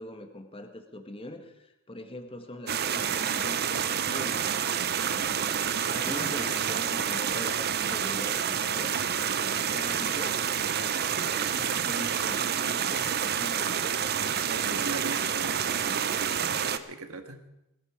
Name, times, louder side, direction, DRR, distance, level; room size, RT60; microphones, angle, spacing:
voice 1, 0.0-4.5 5.1-8.9 9.2-10.4 11.2-13.7, left 1 dB, 25° left, 5 dB, 1.5 m, -42 dB
sound 1, 2.7-16.8, right 8 dB, 50° right, 0.7 m, -28 dB
voice 2, 14.4-17.4, right 3 dB, 80° right, 7 dB, 1.7 m, -39 dB
18.0 x 13.5 x 5.0 m, 0.89 s
head